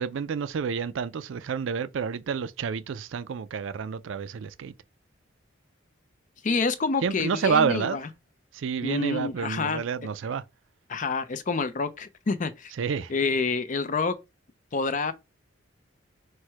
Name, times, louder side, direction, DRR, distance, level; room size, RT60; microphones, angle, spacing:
voice 1, 0.0-4.7 7.0-8.0 8.5-10.4 12.8-13.1, right 6 dB, 70° right, 0.4 m, -29 dB
voice 2, 6.4-8.1 8.8-9.8 10.9-12.7 13.1-14.2 14.7-15.1, left 4 dB, 40° left, 0.4 m, -27 dB
4.4 x 2.2 x 4.6 m
head